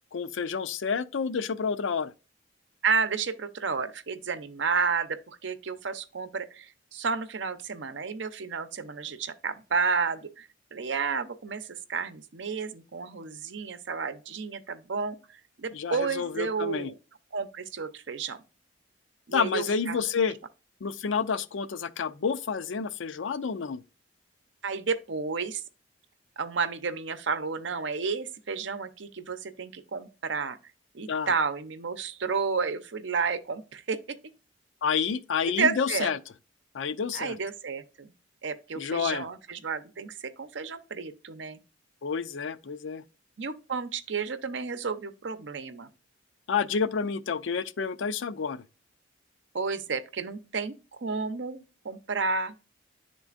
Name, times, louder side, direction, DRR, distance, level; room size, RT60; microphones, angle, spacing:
voice 1, 0.1-2.1 15.7-16.9 19.3-20.3 20.8-23.8 31.1-31.3 34.8-36.2 36.7-37.4 38.8-39.3 42.0-43.0 46.5-48.6, left 6 dB, 75° left, 0.5 m, -29 dB
voice 2, 2.8-15.2 15.6-16.9 17.3-18.4 19.3-20.0 24.6-25.6 26.4-30.6 30.9-34.2 35.6-36.1 37.1-38.1 38.4-41.6 43.4-45.9 49.5-50.7 51.0-52.5, right 5 dB, 70° right, 0.7 m, -31 dB
10.5 x 3.7 x 2.4 m
head